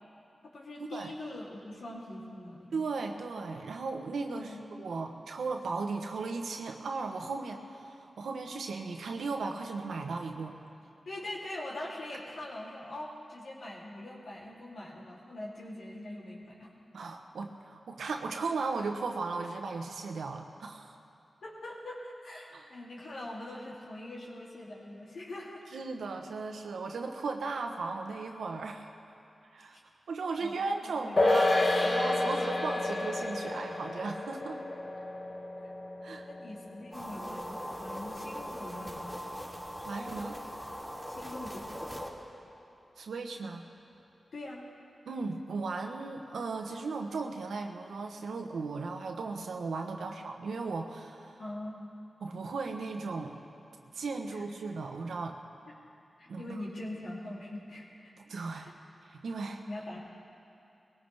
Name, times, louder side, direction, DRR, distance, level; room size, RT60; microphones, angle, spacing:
voice 1, 0.4-2.8 4.3-4.6 11.0-16.7 21.4-25.6 29.7-29.8 30.4-30.5 30.8-31.4 36.2-39.2 41.1-41.7 44.3-44.6 51.4-51.9 54.3-54.4 56.2-58.1 58.6-58.7 59.6-60.0, left 1 dB, 75° left, -4 dB, 3.0 m, -43 dB
voice 2, 2.7-10.6 16.9-21.0 22.5-22.7 25.7-29.0 29.5-29.8 30.1-34.6 36.0-36.3 39.8-40.4 43.0-43.6 45.1-51.4 52.2-53.4 53.9-55.4 56.3-56.6 58.2-58.7 59.0-59.6, right 4 dB, 85° right, 4 dB, 1.0 m, -36 dB
sound 1, 31.2-37.8 38.1-38.2, left 2 dB, 50° left, 1.4 m, -30 dB
sound 2, 36.9-42.1, equal, 5° left, 3.2 m, -40 dB
19.5 x 17.0 x 3.5 m, 2.7 s
cardioid pair, 40°, 0 cm